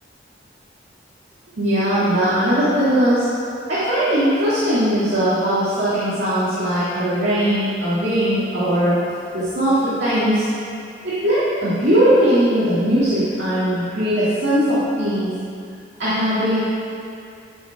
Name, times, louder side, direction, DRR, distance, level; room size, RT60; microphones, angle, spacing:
voice 1, 1.6-3.3 3.7-9.0 9.3-10.5 11.0-15.3 16.0-16.6, equal, 85° right, -12 dB, 1.9 m, -19 dB
11.0 x 4.2 x 4.7 m, 2.4 s
head